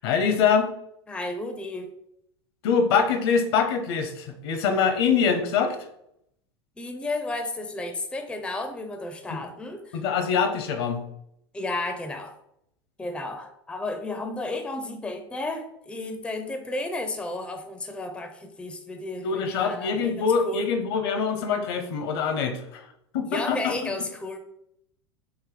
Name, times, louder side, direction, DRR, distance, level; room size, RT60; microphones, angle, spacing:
voice 1, 0.0-0.7 2.6-5.8 9.3-9.4 9.9-11.0 19.2-22.8 23.1-23.9, left 6 dB, 65° left, 7 dB, 0.7 m, -24 dB
voice 2, 1.1-1.9 6.8-10.0 11.5-12.4 13.0-20.7 23.3-24.4, left 2 dB, 5° left, 6 dB, 0.4 m, -33 dB
3.5 x 2.6 x 3.7 m, 0.76 s
hypercardioid pair, 90°, 14 cm